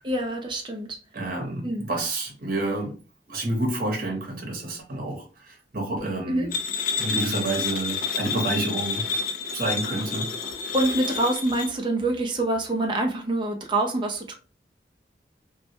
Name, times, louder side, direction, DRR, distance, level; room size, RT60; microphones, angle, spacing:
voice 1, 0.0-1.0 1.6-1.8 6.3-6.5 10.4-14.3, right 1 dB, 25° right, 0.5 m, -26 dB
voice 2, 1.1-2.9 3.3-6.5 7.0-9.1 9.5-10.3, right 2 dB, 50° right, 0.8 m, -29 dB
sound 1, 6.5-11.7, left 5 dB, 50° left, 0.4 m, -29 dB
2.2 x 2.1 x 2.8 m
head